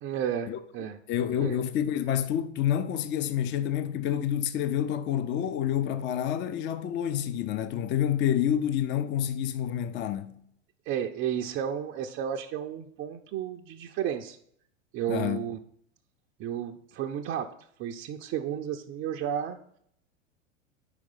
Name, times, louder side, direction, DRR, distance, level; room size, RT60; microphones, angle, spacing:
voice 1, 0.0-1.0 1.4-1.6 10.9-14.4 14.9-15.6 16.4-17.5 17.8-19.6, right 9 dB, 30° right, 0.5 m, -32 dB
voice 2, 1.1-10.4 15.1-15.5, left 10 dB, 30° left, 0.5 m, -28 dB
4.9 x 4.6 x 5.4 m
hypercardioid pair, 95°, 38 cm